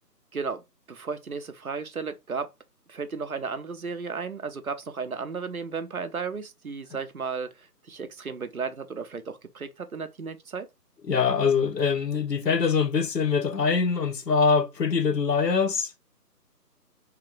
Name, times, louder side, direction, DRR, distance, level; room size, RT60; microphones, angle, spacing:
voice 1, 0.9-2.5 2.9-7.5 7.9-10.7, right 5 dB, 60° right, 0.6 m, -34 dB
voice 2, 11.1-15.9, left 5 dB, 80° left, 1.0 m, -23 dB
3.3 x 2.9 x 3.8 m
figure-of-eight pair, 180°, 49 cm